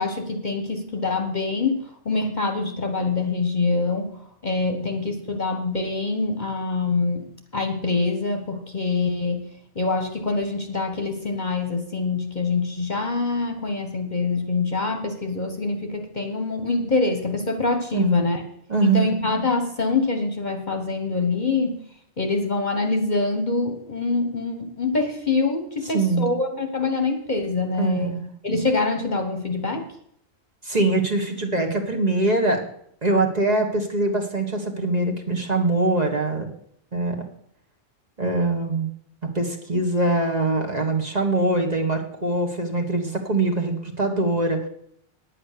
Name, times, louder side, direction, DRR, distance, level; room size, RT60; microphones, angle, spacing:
voice 1, 0.0-7.3 7.5-9.4 9.7-18.4 18.8-21.8 22.2-28.2 28.4-29.9, left 3 dB, 35° left, 5 dB, 1.2 m, -25 dB
voice 2, 17.9-18.2 18.7-19.2 25.9-26.3 27.8-28.3 30.6-32.6 33.0-36.5 36.9-37.2 38.2-38.9 39.2-44.7, right 2 dB, 30° right, 2 dB, 1.6 m, -23 dB
9.8 x 8.7 x 6.6 m, 0.69 s
omnidirectional pair, 1.3 m